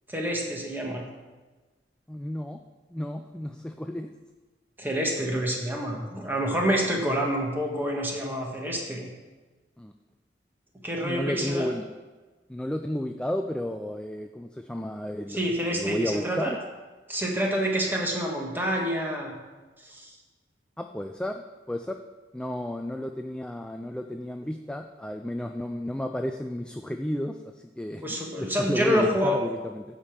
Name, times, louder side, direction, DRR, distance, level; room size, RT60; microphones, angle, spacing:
voice 1, 0.1-1.0 4.8-9.1 10.8-11.7 15.3-16.6 17.1-19.3 19.8-20.1 28.0-29.4, equal, 10° right, -1 dB, 1.7 m, -27 dB
voice 2, 2.1-2.6 2.9-4.1 9.8-9.9 11.0-11.8 12.5-16.6 20.8-21.4 21.7-22.0 22.3-29.8, left 1 dB, 5° left, 5 dB, 0.4 m, -32 dB
9.6 x 5.2 x 7.3 m, 1.3 s
head